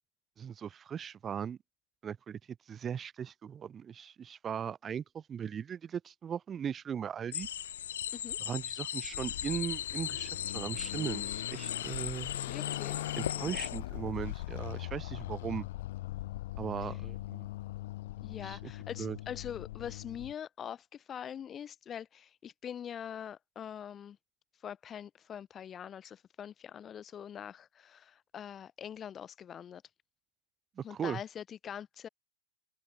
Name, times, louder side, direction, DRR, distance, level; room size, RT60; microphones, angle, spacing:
voice 1, 0.4-1.6 2.0-2.4 2.7-7.5 8.5-12.3 13.2-15.7 16.6-17.5 18.4-18.7 19.0-19.2 30.8-31.2, right 8 dB, 20° right, 0.6 m, -38 dB
sound 1, 7.3-13.8, left 10 dB, 80° left, 0.6 m, -38 dB
Car passing by / Accelerating revving vroom, 9.1-20.3, left 16 dB, 65° left, 1.2 m, -41 dB
voice 2, 12.5-13.6 16.8-16.9 18.2-24.2 24.6-29.8 30.8-32.1, left 9 dB, 25° left, 1.8 m, -44 dB
open air
hypercardioid pair, 130°, 0 cm